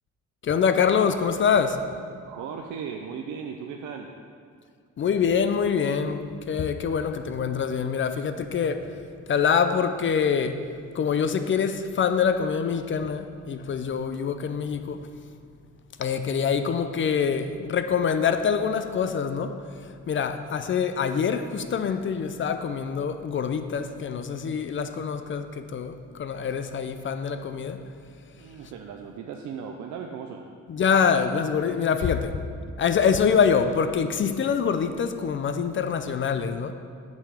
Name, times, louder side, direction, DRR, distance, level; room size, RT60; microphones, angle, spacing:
voice 1, 0.4-1.8 5.0-8.9 9.3-10.6 10.9-15.0 16.0-19.6 20.1-27.8 30.7-32.4 32.8-36.7, left 6 dB, 40° left, 9 dB, 0.5 m, -25 dB
voice 2, 2.2-4.1 28.3-30.5, right 6 dB, 75° right, 3 dB, 0.6 m, -37 dB
7.3 x 5.8 x 4.9 m, 2.2 s
cardioid pair, 90°, 30 cm